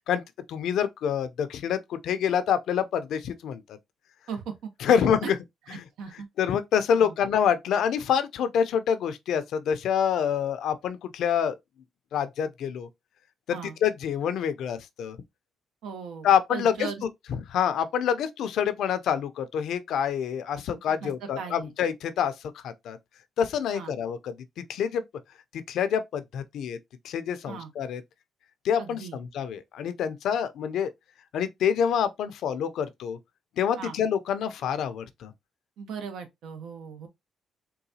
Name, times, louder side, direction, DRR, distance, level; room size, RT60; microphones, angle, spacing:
voice 1, 0.5-3.8 4.8-5.4 6.4-11.5 12.1-12.9 13.5-15.2 16.2-16.9 17.3-23.0 23.4-24.3 24.7-25.0 25.5-26.8 27.0-28.0 28.6-30.9 31.3-33.2 33.6-35.3, left 8 dB, 75° left, 0.5 m, -26 dB
voice 2, 4.3-5.3 5.7-6.3 6.9-7.2 13.5-13.8 15.8-17.0 21.0-21.1 21.4-21.7 23.7-23.9 27.5-27.7 28.8-29.2 33.8-34.0 35.8-37.1, right 6 dB, 80° right, 0.9 m, -38 dB
3.8 x 2.3 x 2.7 m
cardioid pair, 90°, 0 cm